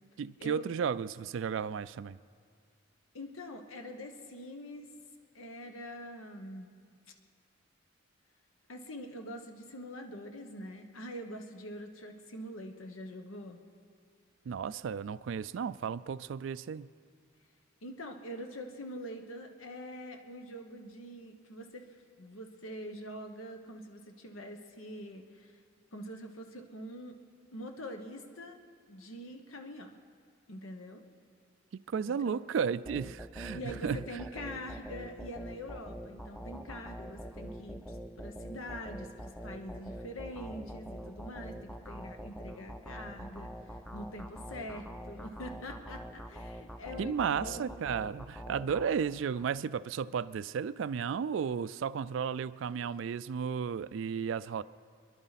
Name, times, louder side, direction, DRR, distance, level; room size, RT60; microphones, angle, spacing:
voice 1, 0.2-2.2 14.5-16.9 31.7-34.0 47.0-54.6, right 7 dB, 70° right, 15 dB, 0.3 m, -34 dB
voice 2, 3.1-4.9 5.3-6.7 7.1-7.2 8.7-13.6 17.8-25.6 25.9-27.2 27.5-28.6 28.9-30.0 30.5-31.0 32.3-32.4 33.5-47.8, equal, 90° left, 5 dB, 1.1 m, -44 dB
sound 1, 32.9-49.5, equal, 5° left, 0.5 m, -45 dB
27.0 x 11.0 x 4.1 m, 2.2 s
head